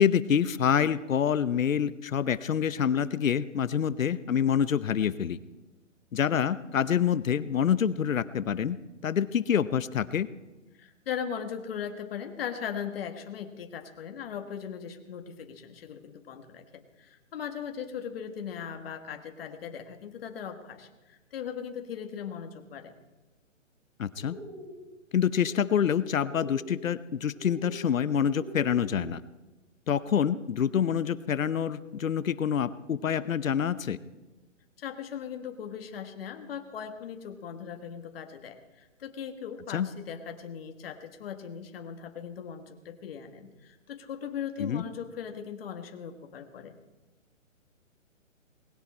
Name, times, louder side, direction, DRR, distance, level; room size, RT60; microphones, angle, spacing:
voice 1, 0.0-5.4 6.1-10.3 24.0-24.4 25.1-29.2 29.9-34.0 39.7-39.9 44.6-44.8, left 8 dB, 80° left, 16 dB, 0.9 m, -26 dB
voice 2, 10.8-22.9 34.8-46.7, left 8 dB, 45° left, 6 dB, 1.7 m, -39 dB
sound 1, 24.2-24.7 25.4-25.9 26.2-26.7 27.3-27.8 28.3-28.9, equal, 10° right, 5.9 m, -43 dB
19.5 x 17.0 x 4.3 m, 1.1 s
hypercardioid pair, 155°, 39 cm